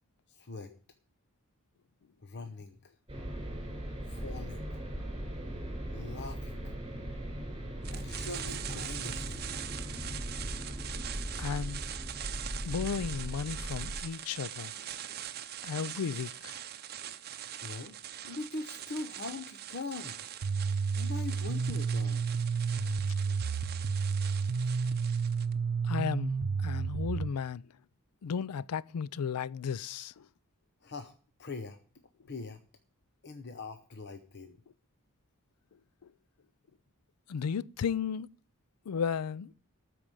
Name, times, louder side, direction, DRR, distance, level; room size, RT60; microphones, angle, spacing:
voice 1, 0.3-0.7 2.2-2.9 4.1-4.7 5.9-6.7 7.9-9.5 17.6-18.0 18.2-20.2 21.0-22.3 30.8-31.1 31.4-31.8 32.3-32.6 33.2-34.6, left 3 dB, 50° left, 0.8 m, -42 dB
sound 1, 3.1-14.0, equal, 20° right, 4.0 m, -39 dB
sound 2, 7.8-25.5, right 11 dB, 45° right, 0.7 m, -43 dB
voice 2, 11.4-11.8 12.6-14.7 15.6-16.6 25.8-27.6 28.2-30.1 37.3-38.3 38.9-39.5, left 6 dB, 85° left, 0.4 m, -34 dB
sound 3, 20.4-27.3, right 5 dB, 85° right, 0.7 m, -31 dB
13.0 x 4.9 x 8.8 m
head